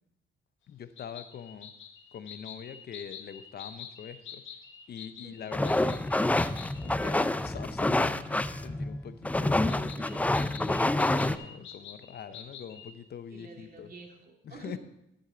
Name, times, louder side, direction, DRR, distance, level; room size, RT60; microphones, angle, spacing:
voice 1, 0.7-1.7 2.1-4.4 4.9-6.0 6.6-9.8 10.5-13.9 14.4-14.8, left 8 dB, 55° left, 12 dB, 0.8 m, -44 dB
sound 1, 1.0-6.9 9.7-12.9, left 7 dB, 80° left, 1.3 m, -47 dB
sound 2, 5.5-11.4, left 2 dB, 5° left, 0.4 m, -27 dB
voice 2, 9.6-10.5 13.3-14.8, right 3 dB, 50° right, 1 dB, 2.5 m, -49 dB
13.0 x 8.2 x 3.9 m, 0.85 s
cardioid pair, 90°, 20 cm